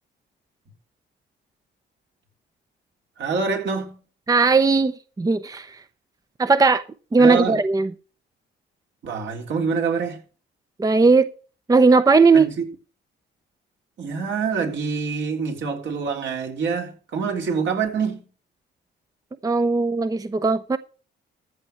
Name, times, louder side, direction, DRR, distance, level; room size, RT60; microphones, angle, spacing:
voice 1, 3.2-4.0 7.2-7.6 9.0-10.2 12.3-12.6 14.0-18.2, right 5 dB, 65° right, 3.5 m, -26 dB
voice 2, 4.3-5.8 6.4-6.8 7.1-7.9 10.8-11.3 11.7-12.5 19.4-20.8, right 4 dB, 20° right, 0.7 m, -17 dB
14.5 x 5.9 x 6.4 m
cardioid pair, 90°, 20 cm